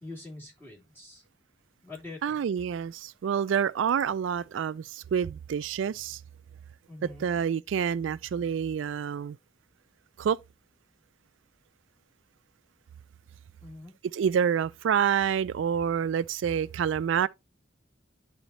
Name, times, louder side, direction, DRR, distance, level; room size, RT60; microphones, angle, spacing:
voice 1, 0.0-1.2 1.8-2.4 6.9-7.3 13.6-13.9, left 2 dB, 10° left, 2.8 m, -44 dB
voice 2, 2.2-6.2 7.2-9.4 10.2-10.4 14.1-17.3, right 8 dB, 75° right, 0.3 m, -27 dB
11.5 x 4.1 x 2.8 m
head